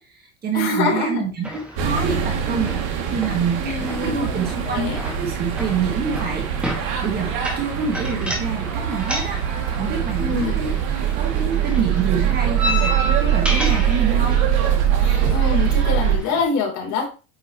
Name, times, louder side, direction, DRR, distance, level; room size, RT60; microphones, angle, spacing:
voice 1, 0.0-6.5 6.8-14.4, right 6 dB, 25° right, 1 dB, 1.8 m, -27 dB
voice 2, 0.5-1.2 1.5-1.6 3.6-4.2 4.7-5.0 10.2-10.5 15.0-17.1, left 4 dB, 50° left, 0 dB, 3.5 m, -25 dB
sound 1, 1.4-16.4, equal, 5° right, 1.9 m, -32 dB
sound 2, 1.8-16.2, right 9 dB, 70° right, 2.2 m, -22 dB
9.4 x 5.6 x 2.9 m, 0.32 s
cardioid pair, 155°, 36 cm